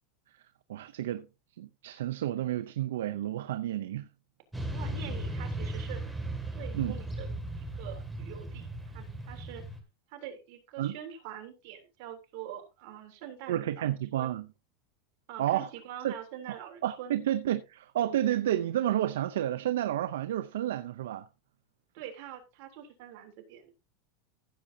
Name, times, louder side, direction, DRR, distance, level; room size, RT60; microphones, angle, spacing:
voice 1, 0.7-1.3 1.6-4.1 6.7-6.9 10.8-11.0 13.5-14.5 15.4-15.7 16.0-16.1 16.5-16.6 16.8-21.3, right 12 dB, 90° right, 0.6 m, -30 dB
Motorcycle / Traffic noise roadway noise, 4.5-9.8, right 1 dB, 5° right, 2.3 m, -37 dB
voice 2, 4.7-6.0 6.5-7.3 7.6-9.6 10.1-13.9 14.2-14.4 15.3-17.2 21.9-23.7, right 10 dB, 60° right, 3.3 m, -44 dB
15.0 x 7.7 x 2.8 m
supercardioid pair, 135°, 0 cm